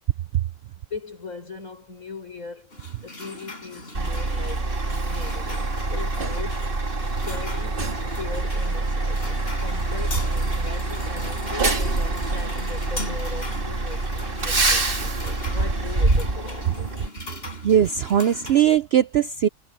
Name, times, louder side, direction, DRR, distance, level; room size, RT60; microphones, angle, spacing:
voice 1, 0.9-6.7 7.2-7.9 8.2-17.0, left 4 dB, 65° left, 6.2 m, -39 dB
sound 1, 2.7-18.8, left 2 dB, 40° left, 4.9 m, -40 dB
Truck, 3.9-17.1, right 2 dB, 40° right, 2.2 m, -25 dB
voice 2, 17.6-19.5, right 10 dB, 65° right, 0.6 m, -19 dB
omnidirectional pair, 1.5 m